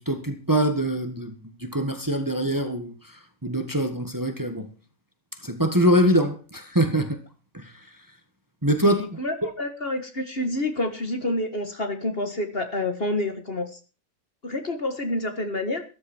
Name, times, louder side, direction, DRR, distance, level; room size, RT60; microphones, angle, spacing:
voice 1, 0.0-4.7 5.4-7.2 7.5-7.7 8.6-9.2, right 1 dB, 15° right, 1.7 m, -24 dB
voice 2, 8.8-13.8 14.4-15.8, left 1 dB, 40° left, 1.9 m, -28 dB
14.0 x 13.5 x 4.5 m
omnidirectional pair, 1.5 m